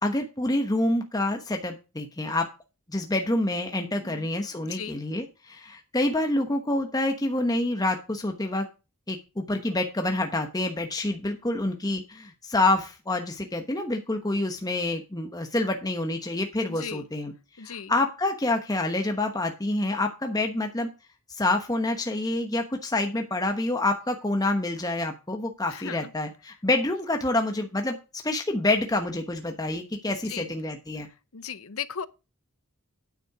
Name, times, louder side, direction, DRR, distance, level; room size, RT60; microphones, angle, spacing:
voice 1, 0.0-2.5 2.9-8.7 9.1-17.3 17.6-20.9 21.3-28.0 28.2-31.1, left 2 dB, 15° left, 1.1 m, -27 dB
voice 2, 4.0-5.0 16.7-17.0 17.6-17.9 25.7-26.1 30.0-30.5 31.3-32.1, left 7 dB, 65° left, 0.8 m, -37 dB
9.5 x 7.6 x 4.8 m
head